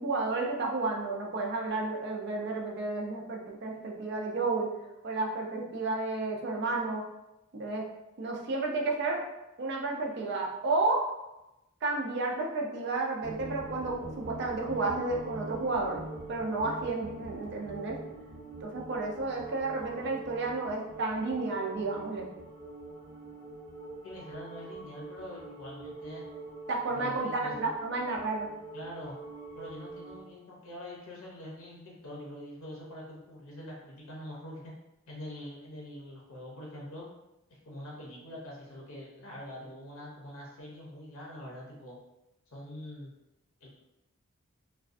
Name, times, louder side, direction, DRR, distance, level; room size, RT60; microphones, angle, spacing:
voice 1, 0.0-4.7 5.0-7.0 7.5-7.9 8.2-9.2 9.6-11.0 11.8-16.0 16.3-18.0 18.6-22.3 26.7-28.5, right 3 dB, 50° right, 0 dB, 0.4 m, -31 dB
sound 1, 12.7-30.3, right 3 dB, 20° left, 0.4 m, -46 dB
sound 2, 13.2-30.2, right 1 dB, 85° right, 0.8 m, -48 dB
voice 2, 24.0-26.2 26.9-27.7 28.7-29.2 29.5-34.7 35.1-37.1 37.7-42.0 42.5-43.1 43.6-43.7, left 1 dB, 75° left, -4 dB, 0.6 m, -44 dB
2.4 x 2.2 x 2.5 m, 0.95 s
head